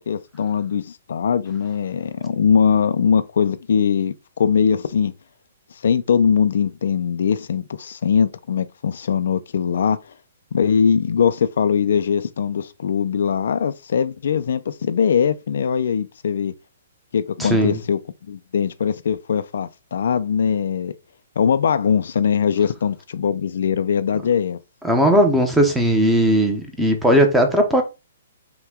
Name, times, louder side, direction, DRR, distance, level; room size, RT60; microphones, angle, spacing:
voice 1, 0.0-5.1 5.8-10.0 10.5-16.5 17.1-18.0 18.3-20.9 21.4-24.6, left 7 dB, 70° left, 0.4 m, -21 dB
voice 2, 17.4-17.8 24.8-27.8, equal, 5° right, 0.7 m, -17 dB
5.7 x 2.2 x 3.6 m
hypercardioid pair, 160°, 0 cm